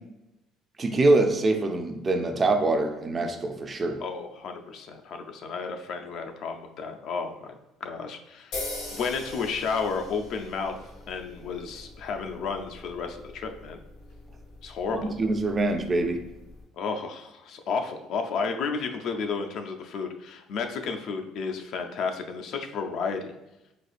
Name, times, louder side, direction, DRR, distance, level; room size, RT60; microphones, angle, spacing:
voice 1, 0.8-4.0 14.9-16.2, right 2 dB, 30° right, 5 dB, 0.4 m, -24 dB
voice 2, 4.0-7.6 7.8-8.6 8.9-10.8 11.1-13.8 14.6-15.1 16.7-23.3, left 5 dB, 65° left, 5 dB, 0.4 m, -32 dB
sound 1, 8.5-16.6, left 2 dB, 85° left, 1.3 m, -42 dB
4.1 x 2.4 x 2.4 m, 0.93 s
cardioid pair, 105°, 0 cm